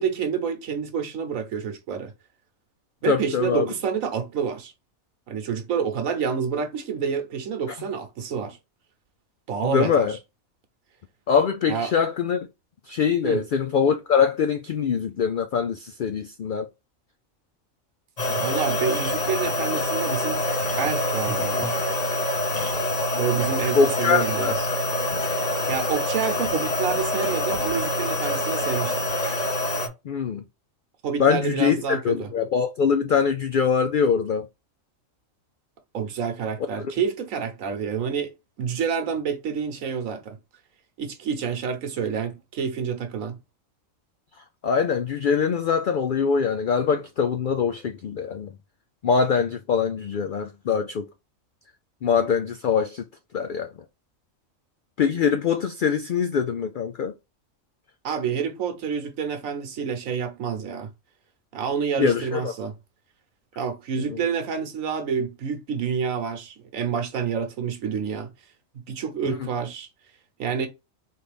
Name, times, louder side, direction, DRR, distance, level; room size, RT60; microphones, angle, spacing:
voice 1, 0.0-2.1 3.0-4.7 5.3-8.6 9.5-10.2 11.7-11.9 13.2-13.4 18.3-20.4 20.8-21.7 23.1-24.5 25.7-29.1 31.0-32.3 35.9-38.3 38.6-40.4 41.0-43.4 58.0-60.9 61.5-62.7 63.6-68.3 68.9-69.9 70.4-70.7, right 6 dB, 75° right, 1.3 m, -28 dB
voice 2, 3.0-3.7 9.6-10.2 11.3-12.4 12.9-16.7 23.8-24.6 30.0-30.4 31.2-34.5 36.8-36.9 44.6-48.5 49.0-51.1 52.0-53.0 53.3-53.7 55.0-57.1 62.0-62.5 64.0-64.2 69.3-69.5, left 6 dB, 85° left, 0.4 m, -23 dB
sound 1, 18.2-29.9, left 1 dB, 35° left, 0.9 m, -26 dB
4.0 x 3.3 x 3.3 m
omnidirectional pair, 1.4 m